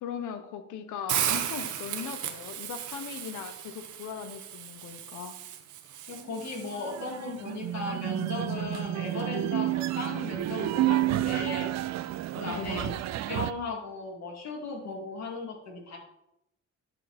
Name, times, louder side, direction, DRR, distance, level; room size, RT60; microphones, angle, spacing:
voice 1, 0.0-5.4 12.4-13.0, left 8 dB, 80° left, 9 dB, 1.1 m, -39 dB
Hiss, 1.1-7.2, right 10 dB, 75° right, 1.0 m, -35 dB
voice 2, 6.1-11.7 12.3-16.0, left 3 dB, 60° left, 0 dB, 2.5 m, -37 dB
sound 1, 6.2-13.5, right 15 dB, 60° right, 0.5 m, -30 dB
10.5 x 4.8 x 4.3 m, 0.82 s
cardioid pair, 90°, 30 cm